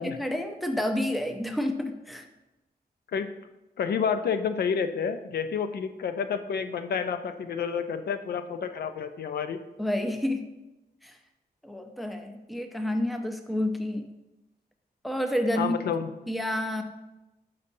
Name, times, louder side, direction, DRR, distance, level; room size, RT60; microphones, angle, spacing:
voice 1, 0.0-2.2 9.8-10.5 11.0-11.1 11.6-14.1 15.0-15.8 16.3-16.8, left 1 dB, ahead, 6 dB, 0.4 m, -29 dB
voice 2, 3.8-9.6 15.6-16.1, left 6 dB, 75° left, 9 dB, 0.4 m, -29 dB
6.6 x 5.3 x 2.6 m, 0.98 s
wide cardioid pair, 135°, 17 cm